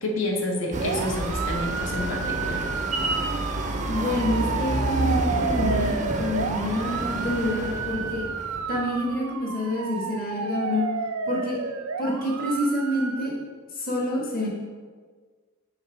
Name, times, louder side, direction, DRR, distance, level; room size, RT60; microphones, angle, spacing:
voice 1, 0.0-2.6, left 1 dB, 65° left, 0 dB, 1.1 m, -29 dB
sound 1, 0.7-9.0, right 1 dB, 35° right, 0.5 m, -29 dB
sound 2, 0.8-13.3, right 5 dB, 85° right, 0.5 m, -31 dB
voice 2, 3.9-8.2 8.7-10.9 11.3-11.6 12.0-13.3 13.7-14.5, left 1 dB, 40° left, -3 dB, 1.5 m, -27 dB
5.7 x 3.9 x 5.8 m, 1.5 s
head